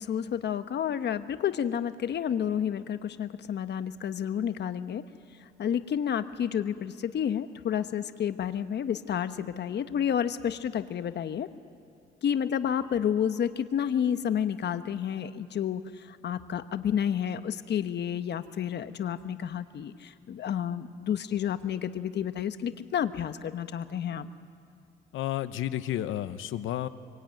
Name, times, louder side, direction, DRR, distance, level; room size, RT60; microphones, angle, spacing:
voice 1, 0.0-5.0 5.6-11.5 12.2-15.8 16.1-24.3, left 9 dB, 60° left, 10 dB, 1.2 m, -30 dB
voice 2, 25.1-26.9, left 12 dB, 85° left, 12 dB, 0.9 m, -31 dB
25.0 x 23.0 x 9.2 m, 2.4 s
cardioid pair, 90°, 20 cm